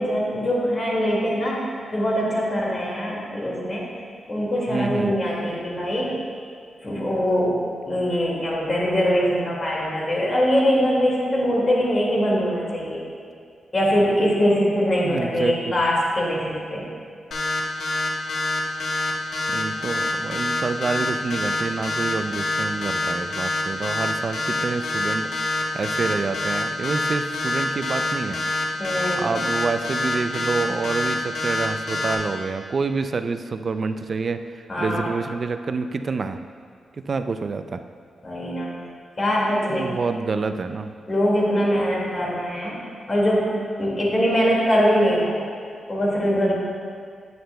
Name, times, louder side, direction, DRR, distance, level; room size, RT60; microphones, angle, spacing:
voice 1, 0.0-1.6 1.9-3.9 4.3-6.2 6.8-13.0 13.7-16.9 28.8-29.3 34.7-35.1 38.2-38.7 39.2-39.9 41.1-43.5 43.8-45.4 45.9-46.6, equal, 35° left, -4 dB, 2.1 m, -22 dB
voice 2, 4.7-5.2 15.0-15.7 19.5-28.4 29.2-36.4 37.1-37.8 39.7-40.9, right 4 dB, 45° right, 9 dB, 0.4 m, -27 dB
sound 1, 17.3-32.1, left 2 dB, 65° left, 1.2 m, -25 dB
9.3 x 8.8 x 2.2 m, 2.2 s
cardioid pair, 105°, 0 cm